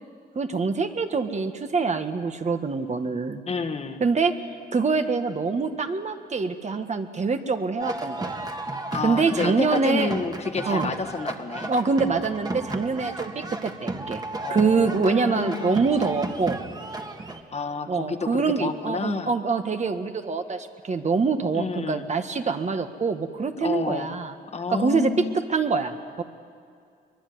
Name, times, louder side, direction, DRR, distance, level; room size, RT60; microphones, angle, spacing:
voice 1, 0.3-3.4 4.0-4.3 4.7-8.4 9.0-10.1 10.7-10.9 11.7-14.2 14.5-16.6 17.9-24.3 24.7-25.1 25.5-26.2, right 4 dB, 40° right, 7 dB, 1.6 m, -25 dB
voice 2, 3.5-4.0 8.9-11.7 14.4-15.8 17.5-19.3 21.5-22.1 23.6-24.1 24.5-25.4, left 4 dB, 40° left, 5 dB, 1.5 m, -30 dB
sound 1, 7.8-17.4, right 2 dB, 25° right, 1.8 m, -34 dB
23.5 x 22.5 x 9.6 m, 2.2 s
cardioid pair, 110°, 17 cm